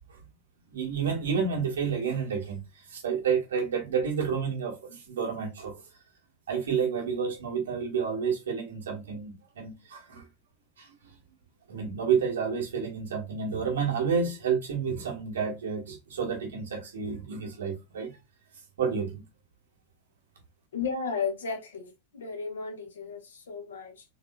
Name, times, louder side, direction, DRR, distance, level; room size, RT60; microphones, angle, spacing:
voice 1, 0.7-5.8 6.5-10.2 10.8-10.9 11.7-18.1 18.8-19.2, right 6 dB, 65° right, 1.3 m, -30 dB
voice 2, 20.7-24.0, left 5 dB, 65° left, 1.0 m, -34 dB
3.6 x 3.4 x 2.2 m
figure-of-eight pair, 90°, 0 cm